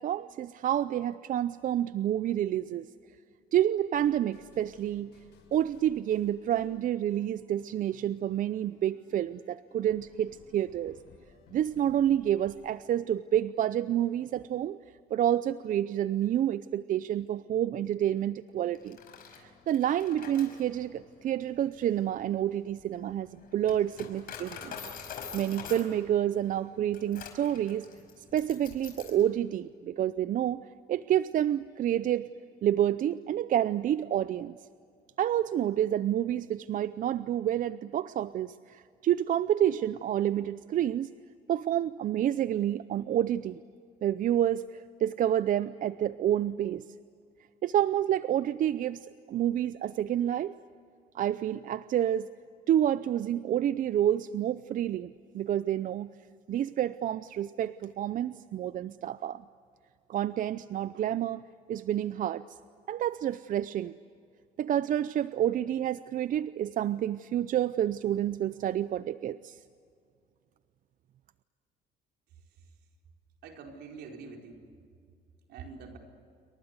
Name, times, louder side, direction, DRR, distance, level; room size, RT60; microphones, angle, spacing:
voice 1, 0.0-2.9 3.5-5.2 5.5-11.0 11.5-14.8 15.1-19.0 19.4-24.7 25.3-27.9 28.2-32.3 32.6-34.6 35.2-41.1 41.5-43.6 44.0-46.9 47.6-50.5 51.1-52.3 52.7-56.1 56.5-59.4 60.1-61.4 61.7-62.4 62.9-63.9 64.6-69.6, right 11 dB, 50° right, 15 dB, 0.6 m, -29 dB
sound 1, 3.7-12.7, left 5 dB, 85° left, 6.8 m, -59 dB
Coin (dropping), 18.7-29.3, left 6 dB, 60° left, 5.3 m, -46 dB
voice 2, 72.4-72.7 73.4-74.7 75.5-76.0, right 5 dB, 80° right, 2 dB, 4.6 m, -46 dB
28.5 x 24.0 x 8.1 m, 2.3 s
cardioid pair, 110°, 17 cm